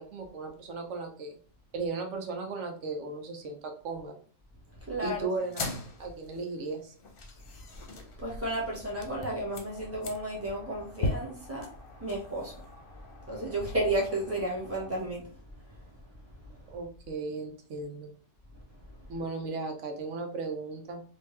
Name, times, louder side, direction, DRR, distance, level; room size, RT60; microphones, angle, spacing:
voice 1, 0.0-1.4 1.7-4.2 5.0-5.7 6.0-6.9 16.7-18.1 19.1-21.0, right 3 dB, 85° right, 4 dB, 1.0 m, -36 dB
voice 2, 4.9-5.3 8.2-11.7 12.0-12.6 13.3-15.2, right 1 dB, 10° right, -4 dB, 1.2 m, -32 dB
sound 1, 5.4-15.0, left 2 dB, 55° left, 0.8 m, -40 dB
3.3 x 2.7 x 3.1 m, 0.42 s
omnidirectional pair, 1.2 m